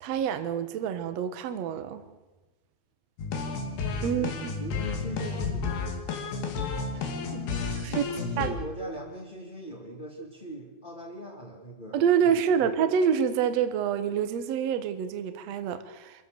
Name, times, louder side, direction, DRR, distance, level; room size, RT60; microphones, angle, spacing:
voice 1, 0.0-2.0 4.0-4.5 7.0-7.1 7.3-7.5 7.8-8.0 8.4-8.5 11.9-16.3, right 8 dB, 60° right, 2.0 m, -27 dB
sound 1, 3.2-8.5, left 4 dB, 80° left, 4.1 m, -32 dB
voice 2, 4.1-5.7 6.1-6.5 7.6-12.7, equal, 15° left, 2.1 m, -41 dB
26.0 x 15.0 x 6.8 m
omnidirectional pair, 4.3 m